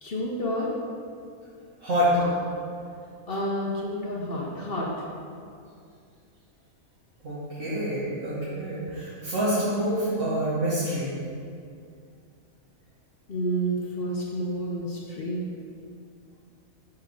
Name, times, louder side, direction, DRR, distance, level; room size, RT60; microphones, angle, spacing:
voice 1, 0.0-0.7 2.2-2.3 3.3-4.9 13.3-15.5, equal, 50° left, -3 dB, 0.9 m, -29 dB
voice 2, 7.2-11.1, right 1 dB, 60° right, -11 dB, 1.8 m, -27 dB
6.6 x 3.6 x 5.9 m, 2.3 s
omnidirectional pair, 1.5 m